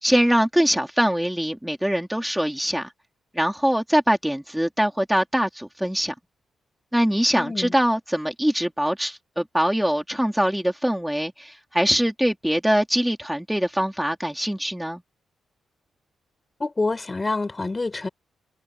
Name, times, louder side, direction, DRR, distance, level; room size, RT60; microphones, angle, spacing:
voice 1, 0.0-2.9 3.3-6.1 6.9-15.0, equal, 5° right, 3.2 m, -23 dB
voice 2, 7.3-7.7 16.6-18.1, left 3 dB, 25° left, 4.6 m, -27 dB
cardioid pair, 80°, 0 cm